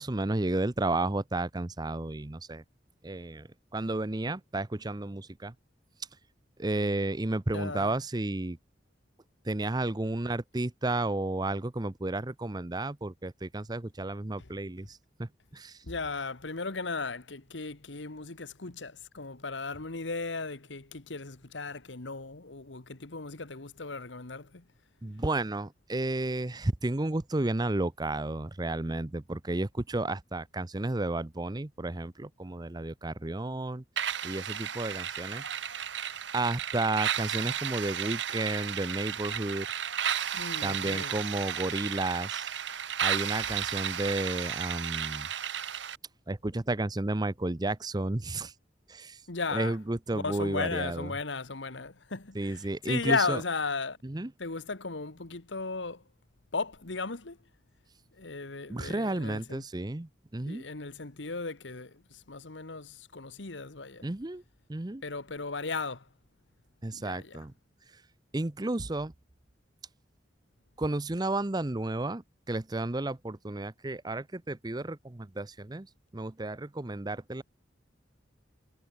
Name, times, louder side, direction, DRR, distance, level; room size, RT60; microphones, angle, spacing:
voice 1, 0.0-2.6 3.0-5.5 6.6-8.6 9.4-15.8 25.0-33.8 34.2-35.4 36.3-39.7 40.6-42.5 43.0-45.3 46.3-48.5 48.9-49.2 49.5-51.1 52.3-53.4 54.0-54.3 58.7-60.6 64.0-64.4 64.7-65.0 66.8-67.5 68.3-69.1 70.8-72.2 72.5-75.9 76.1-77.4, right 2 dB, 20° right, 0.7 m, -32 dB
voice 2, 7.5-7.9 14.4-14.5 15.8-24.6 40.3-41.2 49.3-49.8 50.1-54.0 54.4-56.0 56.5-57.4 58.2-59.6 60.4-64.1 65.0-66.1 66.9-67.4, left 4 dB, 85° left, 1.6 m, -36 dB
sound 1, 34.0-46.0, right 9 dB, 80° right, 1.4 m, -33 dB
head